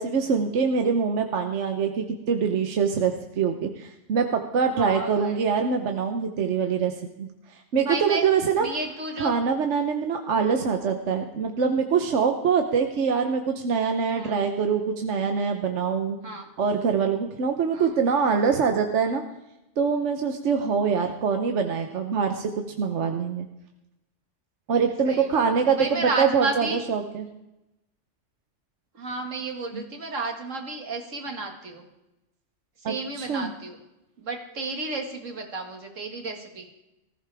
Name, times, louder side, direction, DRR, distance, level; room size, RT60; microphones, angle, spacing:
voice 1, 0.0-6.9 7.2-8.7 9.2-16.2 16.6-19.2 19.8-22.5 22.8-23.5 24.7-27.3 29.7-29.8 32.8-33.5, right 6 dB, 70° right, 5 dB, 1.2 m, -24 dB
voice 2, 4.7-5.5 7.8-8.2 8.6-9.4 14.2-14.4 16.2-16.5 17.7-17.9 25.0-26.8 28.9-31.8 32.8-33.8 34.2-36.7, right 3 dB, 85° right, 3 dB, 2.3 m, -32 dB
19.0 x 15.0 x 3.4 m, 0.93 s
omnidirectional pair, 1.3 m